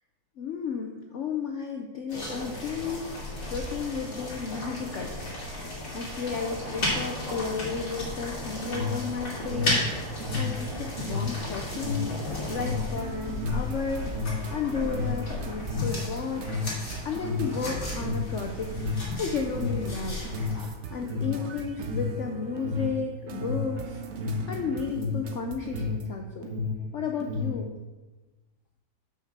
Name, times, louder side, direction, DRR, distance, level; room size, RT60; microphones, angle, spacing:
voice 1, 0.4-5.1 5.4-5.7 5.9-14.1 14.5-16.5 17.0-20.2 20.6-24.0 24.5-26.5 26.9-27.7, left 5 dB, 75° left, 3 dB, 0.6 m, -33 dB
sound 1, 2.1-20.7, left 1 dB, 40° left, 3.1 m, -34 dB
Alarm, 8.6-26.1 26.4-27.6, left 4 dB, 45° right, 1.6 m, -32 dB
sound 2, 13.0-26.1, right 6 dB, 65° right, 0.6 m, -43 dB
6.5 x 6.1 x 7.2 m, 1.2 s
omnidirectional pair, 2.2 m